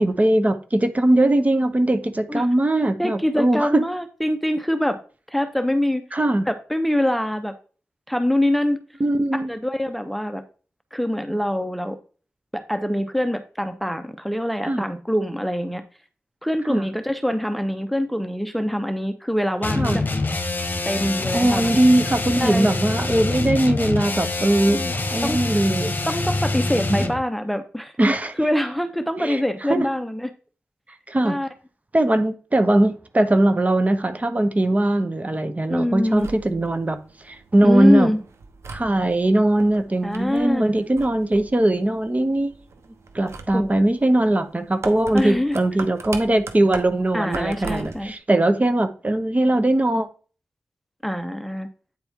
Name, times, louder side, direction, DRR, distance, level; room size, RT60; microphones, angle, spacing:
voice 1, 0.0-3.8 6.1-6.4 9.0-9.5 14.7-14.8 16.7-16.8 19.8-20.0 21.3-24.8 25.1-25.9 26.9-27.0 28.0-28.3 29.2-29.4 29.7-29.8 31.1-31.4 31.9-37.0 37.3-38.1 38.7-42.5 43.1-50.1, right 1 dB, 30° right, 0.9 m, -20 dB
voice 2, 3.0-5.0 5.3-6.0 6.5-7.6 8.1-8.8 9.3-10.4 10.9-12.0 12.5-15.8 16.4-20.1 20.9-21.7 22.4-22.7 24.7-24.9 25.2-25.4 26.1-27.9 28.4-30.3 31.2-31.5 35.7-36.3 37.6-38.2 40.0-40.9 43.5-44.0 45.1-45.6 47.1-48.1 51.0-51.7, left 1 dB, ahead, 0.8 m, -24 dB
sound 1, 19.6-27.2, left 2 dB, 40° left, 1.1 m, -25 dB
sound 2, 36.0-48.1, right 4 dB, 80° right, 0.9 m, -40 dB
9.1 x 4.3 x 3.6 m
cardioid pair, 50°, 5 cm